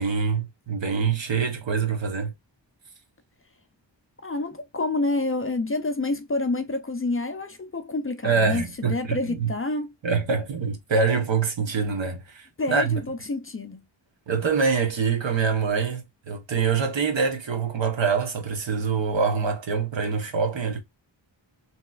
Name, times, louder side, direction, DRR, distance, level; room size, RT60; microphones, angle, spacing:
voice 1, 0.0-2.3 8.2-9.5 10.0-13.0 14.3-20.8, right 5 dB, 70° right, 1.0 m, -25 dB
voice 2, 4.2-9.9 12.6-13.8, left 2 dB, 30° left, 0.4 m, -28 dB
3.1 x 2.8 x 2.3 m
wide cardioid pair, 95°, 46 cm